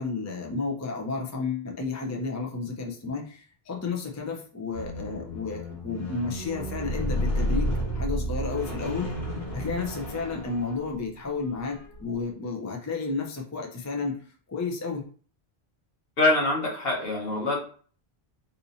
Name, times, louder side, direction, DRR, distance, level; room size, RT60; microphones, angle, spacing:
voice 1, 0.0-9.1 9.5-14.2 14.5-15.0, left 4 dB, 25° left, 0 dB, 0.4 m, -32 dB
Squeak, 4.7-11.1 11.8-12.0, equal, 45° left, 1.3 m, -31 dB
voice 2, 16.2-17.6, left 2 dB, 65° left, -1 dB, 1.2 m, -24 dB
2.8 x 2.5 x 4.0 m, 0.43 s
omnidirectional pair, 1.1 m